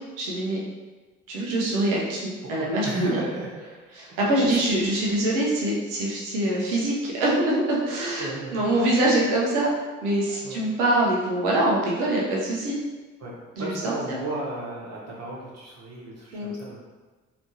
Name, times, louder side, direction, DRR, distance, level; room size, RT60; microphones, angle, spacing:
voice 1, 0.2-0.6 1.3-3.2 3.9-9.7 10.0-12.8 13.6-14.2 16.3-16.5, right 1 dB, 70° right, -4 dB, 1.0 m, -24 dB
voice 2, 2.4-3.5 4.1-4.3 4.9-5.2 8.2-8.7 10.4-10.6 13.2-16.8, right 2 dB, 45° right, -4 dB, 1.4 m, -34 dB
4.2 x 3.0 x 2.9 m, 1.3 s
figure-of-eight pair, 45°, 37 cm